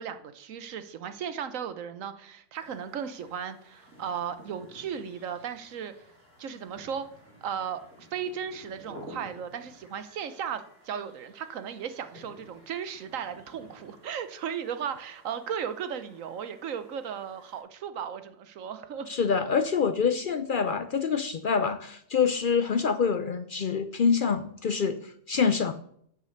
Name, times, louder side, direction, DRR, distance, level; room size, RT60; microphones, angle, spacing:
voice 1, 0.0-5.9 6.4-7.1 7.4-19.1, right 8 dB, 85° right, 11 dB, 1.3 m, -36 dB
sound 1, 2.5-17.6, equal, 70° right, 4.8 m, -53 dB
voice 2, 19.1-25.7, left 6 dB, 55° left, 10 dB, 0.6 m, -26 dB
8.3 x 6.6 x 6.5 m, 0.67 s
omnidirectional pair, 1.3 m